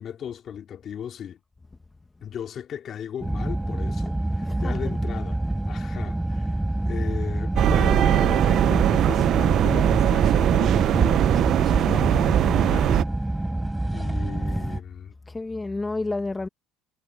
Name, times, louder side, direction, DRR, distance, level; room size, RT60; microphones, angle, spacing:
voice 1, 0.0-1.4 2.2-5.4 5.7-6.5 6.9-13.0 13.9-15.1, left 9 dB, 40° left, 3.2 m, -37 dB
sound 1, 3.2-14.8, right 1 dB, 5° right, 3.9 m, -27 dB
voice 2, 4.4-4.8 15.3-16.5, left 2 dB, 15° left, 1.3 m, -30 dB
sound 2, 7.6-13.0, right 11 dB, 50° right, 0.5 m, -20 dB
cardioid pair, 135°, 0 cm